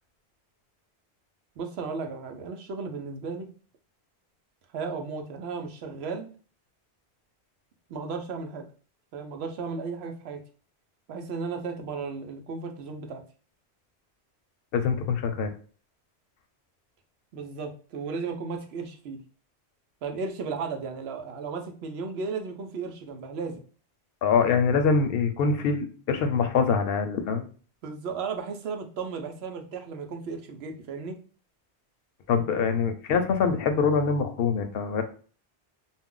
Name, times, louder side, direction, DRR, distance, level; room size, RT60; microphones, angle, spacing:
voice 1, 1.6-3.5 4.7-6.3 7.9-8.7 9.1-10.4 11.1-13.2 17.3-19.2 20.0-23.6 27.8-31.2 32.3-32.5, right 4 dB, 75° right, 5 dB, 0.8 m, -35 dB
voice 2, 14.7-15.5 24.2-27.5 32.3-35.0, left 5 dB, 65° left, 7 dB, 0.7 m, -24 dB
2.4 x 2.0 x 3.6 m, 0.40 s
omnidirectional pair, 1.1 m